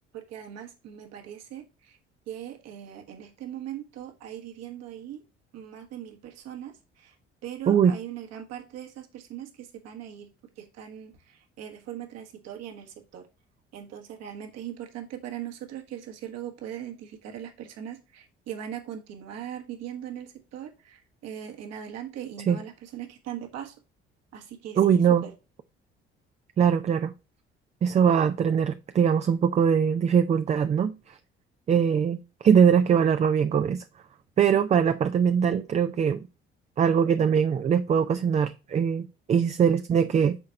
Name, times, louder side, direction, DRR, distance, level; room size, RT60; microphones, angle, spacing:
voice 1, 0.1-2.0 2.3-5.2 5.5-7.1 7.4-13.3 13.7-23.7 24.3-25.3, right 10 dB, 55° right, 1.3 m, -40 dB
voice 2, 24.8-25.3 26.6-27.1 27.8-31.2 31.7-33.8 34.4-36.3 36.8-40.4, right 7 dB, 25° right, 0.4 m, -22 dB
5.8 x 4.2 x 5.0 m
figure-of-eight pair, 50°, 30 cm